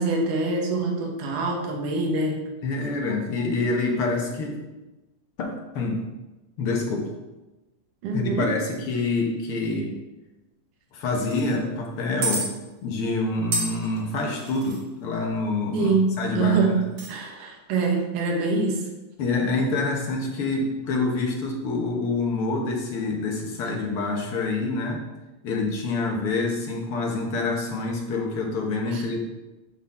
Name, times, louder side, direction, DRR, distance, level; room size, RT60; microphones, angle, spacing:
voice 1, 0.0-2.5 8.0-8.5 15.7-16.8 17.1-18.9 28.9-29.0, right 3 dB, 90° right, 1 dB, 2.7 m, -24 dB
voice 2, 2.6-4.6 5.4-6.0 6.6-7.1 8.1-9.9 10.9-12.5 12.8-15.9 16.2-16.8 19.2-25.0 25.4-29.2, left 3 dB, 55° left, 0 dB, 1.7 m, -26 dB
sound 1, 11.2-11.5 12.2-12.5 13.5-14.8 16.8-17.1, right 2 dB, 60° right, 2.6 m, -29 dB
12.0 x 4.0 x 4.2 m, 1.1 s
omnidirectional pair, 3.5 m